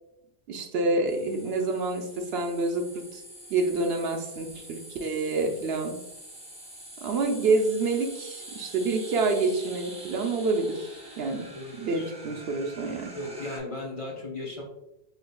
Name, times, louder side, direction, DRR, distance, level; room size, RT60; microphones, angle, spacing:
voice 1, 0.5-2.9 3.1-3.2 3.5-5.9 7.0-11.5 11.8-13.1, right 3 dB, 70° right, 4 dB, 0.8 m, -27 dB
sound 1, 1.1-13.6, right 1 dB, 5° right, 0.7 m, -45 dB
voice 2, 11.5-12.3 13.1-14.6, left 2 dB, 35° left, -2 dB, 0.7 m, -37 dB
6.3 x 2.8 x 2.2 m, 0.89 s
omnidirectional pair, 1.1 m